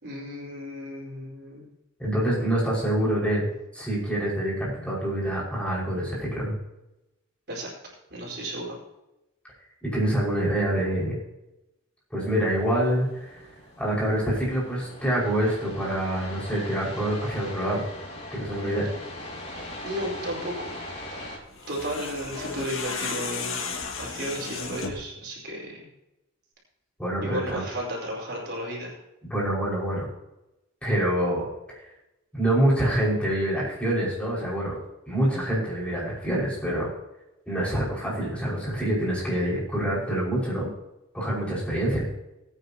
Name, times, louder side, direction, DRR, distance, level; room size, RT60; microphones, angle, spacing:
voice 1, 0.0-1.7 7.5-8.8 19.8-20.7 21.7-25.9 27.2-29.0, equal, 55° right, -3 dB, 4.4 m, -34 dB
voice 2, 2.0-3.5 3.7-6.5 9.8-11.2 12.1-13.1 13.3-13.4 13.8-17.8 18.3-18.9 27.0-27.6 29.3-30.1 30.8-31.5 32.3-34.8 35.1-36.9 37.5-40.7 41.1-42.0, right 1 dB, 5° left, -6 dB, 5.5 m, -26 dB
sound 1, 12.2-21.4, left 1 dB, 35° left, 4.2 m, -41 dB
sound 2, 21.5-25.1, left 4 dB, 80° left, 2.0 m, -34 dB
20.5 x 9.3 x 2.9 m, 0.93 s
head